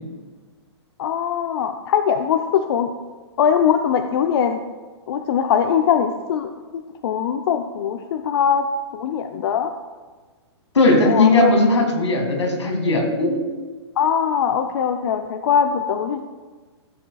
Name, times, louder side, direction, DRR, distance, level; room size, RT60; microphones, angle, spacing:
voice 1, 1.0-2.9 3.4-4.6 5.1-6.5 7.0-8.7 8.9-9.7 11.0-11.5 14.0-16.2, left 8 dB, 60° left, 6 dB, 0.6 m, -21 dB
voice 2, 10.7-13.4, left 2 dB, 90° left, 2 dB, 1.9 m, -17 dB
15.0 x 7.3 x 2.3 m, 1.4 s
hypercardioid pair, 125°, 14 cm